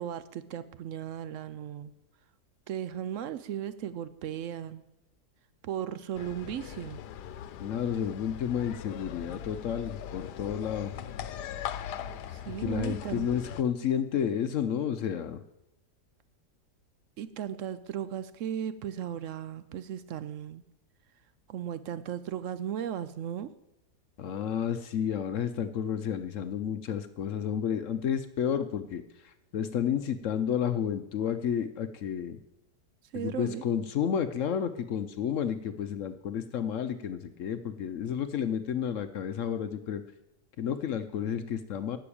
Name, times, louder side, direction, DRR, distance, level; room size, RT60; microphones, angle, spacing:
voice 1, 0.0-1.9 2.7-4.8 5.6-7.0 12.3-13.3 17.2-20.6 21.5-23.5 33.1-33.6, right 9 dB, 70° right, 13 dB, 0.8 m, -36 dB
sound 1, 6.1-13.6, left 10 dB, 90° left, 1.2 m, -40 dB
voice 2, 7.6-10.9 12.6-15.4 24.2-32.4 33.1-40.0 40.6-42.0, left 8 dB, 65° left, 10 dB, 0.9 m, -31 dB
11.5 x 6.1 x 8.6 m, 0.89 s
omnidirectional pair, 1.7 m